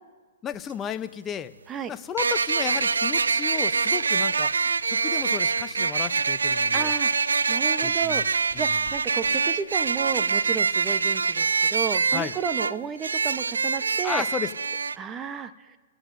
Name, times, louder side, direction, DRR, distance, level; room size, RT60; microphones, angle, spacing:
voice 1, 0.4-1.5 1.9-4.5 4.9-6.9 7.8-8.2 8.5-8.7 12.1-12.3 14.0-14.5, left 8 dB, 20° left, 11 dB, 0.7 m, -33 dB
sound 1, 0.5-0.6 2.2-15.0, right 5 dB, 85° right, 0.4 m, -25 dB
voice 2, 6.7-7.1 7.5-8.2 8.6-14.2 15.0-15.5, right 7 dB, 20° right, 10 dB, 0.9 m, -32 dB
sound 2, 8.1-10.1, left 8 dB, 40° left, 2.7 m, -53 dB
28.5 x 16.0 x 2.7 m, 1.4 s
hypercardioid pair, 120°, 0 cm